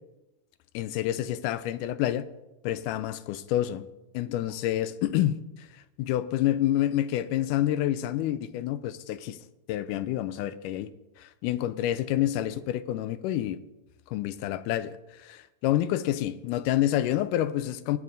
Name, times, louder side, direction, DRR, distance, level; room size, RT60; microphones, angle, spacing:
voice 1, 0.8-2.2 2.6-3.9 4.1-5.4 6.0-9.4 9.7-10.9 11.2-13.6 14.1-15.0 15.2-18.0, left 13 dB, 80° left, 2.0 m, -28 dB
19.5 x 9.4 x 2.7 m
omnidirectional pair, 3.9 m